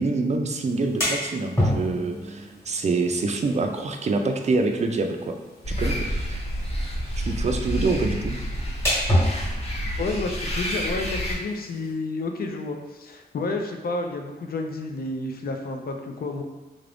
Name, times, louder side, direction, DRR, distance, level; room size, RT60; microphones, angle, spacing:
voice 1, 0.0-5.4 5.7-6.4 7.2-8.4, right 3 dB, 40° right, 5 dB, 0.4 m, -26 dB
sound 1, 0.7-11.9, equal, 15° left, 1.1 m, -31 dB
sound 2, 5.6-11.3, equal, 40° left, 1.0 m, -29 dB
voice 2, 10.0-16.4, left 3 dB, 65° left, 3 dB, 0.5 m, -30 dB
3.7 x 2.5 x 3.4 m, 1.1 s
wide cardioid pair, 135°, 17 cm